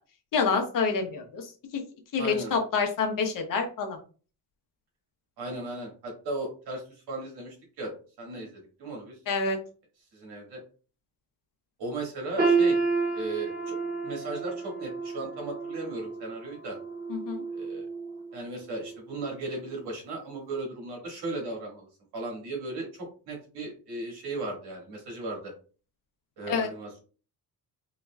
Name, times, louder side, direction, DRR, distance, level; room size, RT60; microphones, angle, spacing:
voice 1, 0.3-1.8 2.1-4.0 9.3-9.6 17.1-17.4 26.5-26.7, left 5 dB, 55° left, 4 dB, 1.0 m, -27 dB
voice 2, 2.1-2.5 5.4-6.8 7.1-7.9 8.2-9.2 10.1-10.6 11.8-12.8 13.1-13.8 14.0-16.8 17.5-17.9 18.3-25.5 26.4-27.0, right 2 dB, 85° right, 0 dB, 1.9 m, -36 dB
sound 1, 12.4-18.3 18.7-19.0 19.7-19.8, right 4 dB, 25° right, 1.0 m, -30 dB
4.0 x 3.0 x 2.3 m, 0.38 s
cardioid pair, 140°, 38 cm